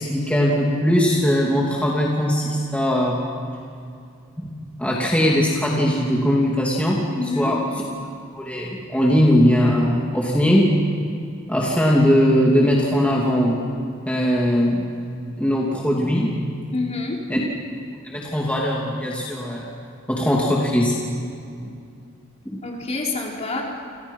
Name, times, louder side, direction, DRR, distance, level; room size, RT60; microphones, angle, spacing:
voice 1, 0.0-3.2 4.4-4.5 4.8-7.0 7.4-7.6 8.3-10.7 11.5-13.6 14.1-14.8 15.4-16.3 17.3-17.4 18.0-19.7 20.1-21.0 21.6-21.7 22.4-22.6, equal, 5° left, -4 dB, 2.9 m, -20 dB
voice 2, 7.2-7.5 16.7-17.2 22.6-23.6, left 3 dB, 35° left, -1 dB, 4.4 m, -27 dB
30.0 x 27.0 x 5.7 m, 2.4 s
head